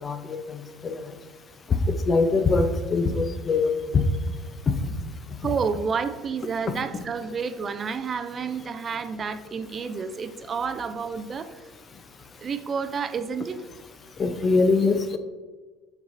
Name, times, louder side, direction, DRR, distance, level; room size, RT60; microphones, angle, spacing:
voice 1, 0.0-1.0 1.9-4.0 14.2-15.2, left 3 dB, 35° left, 9 dB, 0.6 m, -23 dB
voice 2, 5.4-11.6 12.4-13.6, right 5 dB, 35° right, 11 dB, 0.4 m, -30 dB
6.9 x 5.3 x 2.6 m, 1.3 s
supercardioid pair, 90°, 0 cm